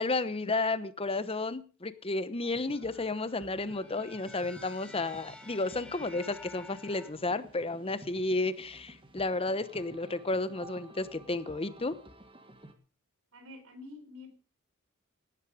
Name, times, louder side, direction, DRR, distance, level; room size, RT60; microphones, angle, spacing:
voice 1, 0.0-11.9, left 2 dB, 25° left, 14 dB, 1.0 m, -32 dB
sound 1, 2.4-12.7, right 1 dB, 25° right, 1.7 m, -53 dB
sound 2, 2.7-7.1, left 2 dB, 5° left, 2.2 m, -51 dB
voice 2, 13.3-14.3, left 2 dB, 70° right, 8 dB, 3.9 m, -47 dB
18.0 x 10.5 x 5.0 m, 0.38 s
head